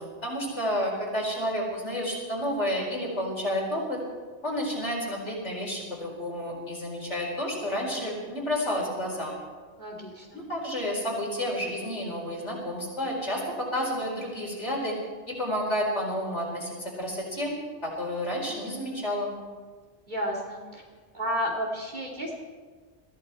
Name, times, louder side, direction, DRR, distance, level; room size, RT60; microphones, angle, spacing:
voice 1, 0.0-4.0 4.4-9.3 10.3-15.0 15.3-17.5 17.8-19.3, equal, 90° left, -2 dB, 4.8 m, -30 dB
voice 2, 9.8-10.4 20.1-20.8 21.1-22.3, equal, 40° right, -2 dB, 3.1 m, -32 dB
21.5 x 15.0 x 4.4 m, 1.5 s
omnidirectional pair, 1.2 m